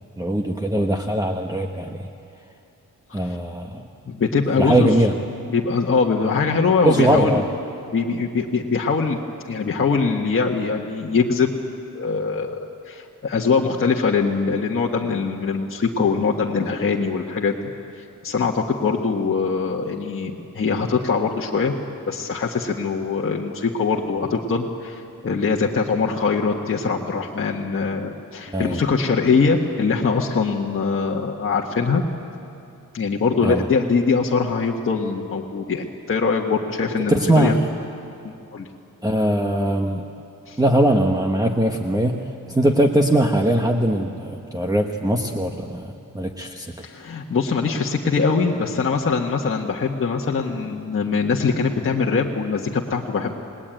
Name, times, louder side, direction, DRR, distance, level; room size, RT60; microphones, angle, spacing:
voice 1, 0.2-2.1 3.1-3.8 4.6-5.1 6.8-7.4 28.5-28.8 33.4-33.7 37.1-37.7 39.0-40.0 40.6-46.7, right 1 dB, 10° right, 3 dB, 1.1 m, -21 dB
voice 2, 4.1-4.9 5.4-7.4 7.9-9.2 9.4-11.5 11.9-12.6 12.9-17.5 18.0-21.7 22.1-32.0 32.9-37.5 38.5-38.7 40.5-40.6 46.8-53.4, left 4 dB, 40° left, -1 dB, 1.5 m, -22 dB
29.5 x 20.0 x 9.0 m, 2.6 s
wide cardioid pair, 150°, 33 cm